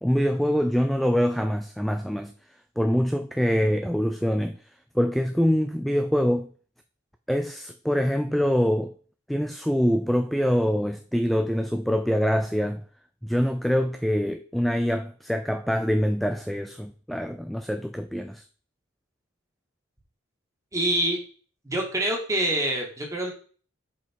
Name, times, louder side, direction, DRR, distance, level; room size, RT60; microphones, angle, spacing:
voice 1, 0.0-2.3 2.8-4.6 4.9-6.5 7.3-8.9 9.3-12.8 13.2-18.4, equal, ahead, 0.3 m, -24 dB
voice 2, 20.7-21.2 21.6-23.3, right 1 dB, 15° right, 1.9 m, -25 dB
5.8 x 5.2 x 4.5 m
head